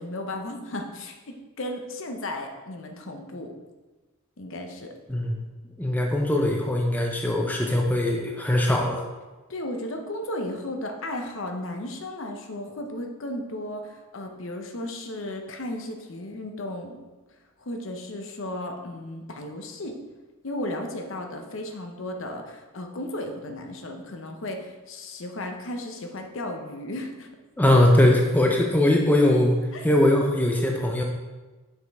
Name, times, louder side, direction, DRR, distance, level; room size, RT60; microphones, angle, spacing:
voice 1, 0.0-3.5 4.4-4.9 9.5-17.0 17.6-20.0 20.4-27.3 29.7-29.9, left 1 dB, 65° left, 4 dB, 0.7 m, -35 dB
voice 2, 5.1-5.5 5.8-9.0 27.6-29.6 29.8-31.0, left 1 dB, 10° left, 0 dB, 0.5 m, -21 dB
6.5 x 5.0 x 3.5 m, 1.2 s
head